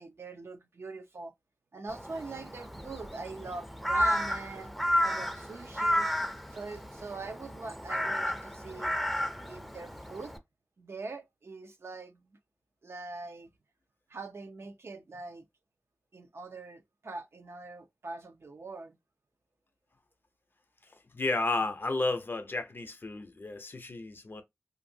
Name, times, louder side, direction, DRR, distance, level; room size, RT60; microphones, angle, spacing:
voice 1, 0.0-1.3 1.7-4.7 5.0-6.1 6.5-9.0 9.5-10.3 10.8-12.2 12.8-13.5 14.1-15.4 16.1-19.0, right 3 dB, 65° right, 0.5 m, -42 dB
Crow, 1.9-10.4, equal, ahead, 0.5 m, -32 dB
voice 2, 21.1-24.4, left 3 dB, 50° left, 0.5 m, -32 dB
2.6 x 2.6 x 2.6 m
wide cardioid pair, 70°, 5 cm